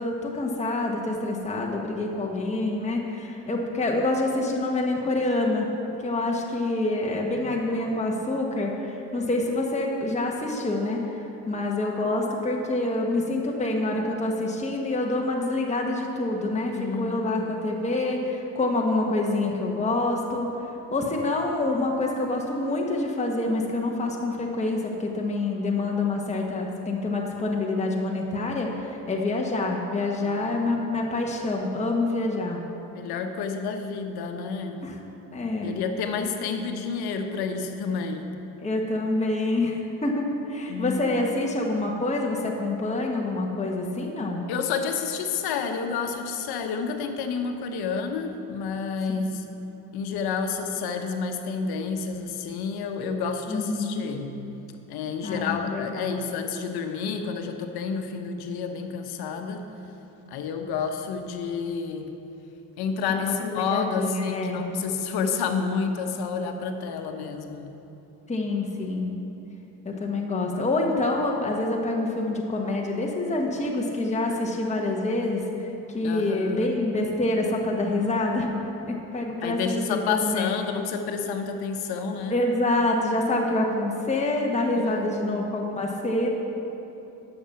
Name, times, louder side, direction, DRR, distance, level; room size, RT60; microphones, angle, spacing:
voice 1, 0.0-5.7 6.0-20.5 20.9-32.6 34.8-35.0 35.3-35.7 38.6-44.4 49.1-49.4 53.5-54.1 55.2-56.1 63.1-64.6 68.3-69.1 69.8-78.5 78.9-80.5 82.3-86.3, left 2 dB, 15° left, -1 dB, 1.3 m, -27 dB
voice 2, 16.8-17.5 30.2-30.9 32.9-34.8 35.6-38.3 40.7-41.2 44.5-49.4 49.9-54.3 54.9-59.7 60.3-62.1 62.8-67.7 76.0-76.7 79.4-82.4 84.8-85.4, left 5 dB, 65° left, 5 dB, 1.1 m, -30 dB
11.0 x 7.1 x 5.7 m, 3.0 s
supercardioid pair, 75°, 41 cm